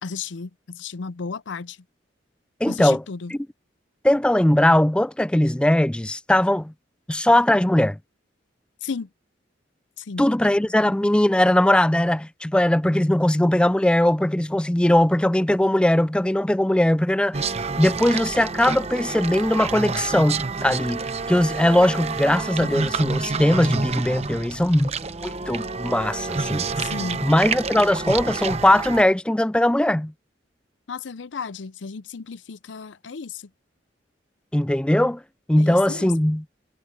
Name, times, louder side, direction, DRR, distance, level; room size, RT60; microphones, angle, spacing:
voice 1, 0.0-1.8 2.7-3.3 8.8-9.1 10.0-10.3 26.8-27.3 30.9-33.5 35.6-36.1, left 5 dB, 75° left, 0.6 m, -34 dB
voice 2, 2.6-3.0 3.3-3.4 4.0-6.7 7.1-8.0 10.2-24.9 25.2-26.7 27.2-30.1 34.5-35.2 35.5-36.4, left 1 dB, 5° left, 0.3 m, -20 dB
sound 1, 17.3-29.0, right 4 dB, 35° right, 0.9 m, -28 dB
head